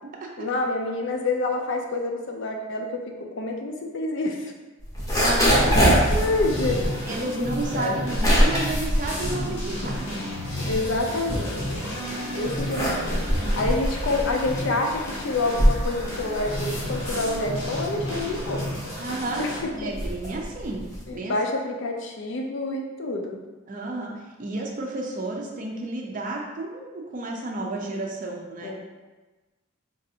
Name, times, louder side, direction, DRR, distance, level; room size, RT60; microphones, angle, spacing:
voice 1, 0.4-4.5 5.1-5.2 5.6-6.8 7.2-8.0 10.6-11.8 12.3-18.7 19.4-19.9 21.1-23.4 28.6-28.7, left 2 dB, 60° left, 2 dB, 0.4 m, -28 dB
sound 1, 4.8-10.1 10.5-11.9 12.4-21.2, equal, 15° left, 0.7 m, -24 dB
voice 2, 5.2-5.8 7.1-10.0 12.4-12.5 13.4-13.7 19.0-19.5 19.7-20.8 21.1-21.3 23.7-28.7, right 2 dB, 40° right, 0 dB, 0.4 m, -31 dB
sound 2, 5.3-19.6, equal, 75° left, 1.0 m, -32 dB
4.0 x 2.5 x 2.7 m, 1.2 s
head